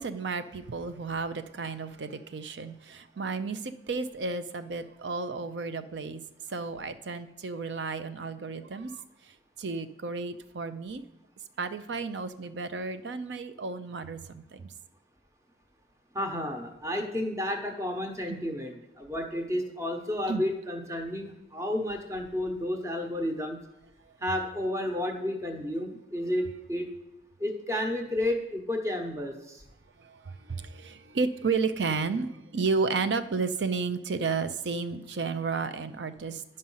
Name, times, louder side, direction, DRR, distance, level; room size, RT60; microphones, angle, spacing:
voice 1, 0.0-6.2 6.5-9.0 9.6-11.1 11.6-14.7 18.3-18.5 20.3-20.4 30.0-36.4, right 4 dB, 90° right, 11 dB, 0.5 m, -32 dB
voice 2, 16.1-23.6 24.2-26.9 27.4-29.6, left 1 dB, 15° right, 3 dB, 0.9 m, -31 dB
10.5 x 5.3 x 5.5 m, 0.88 s
head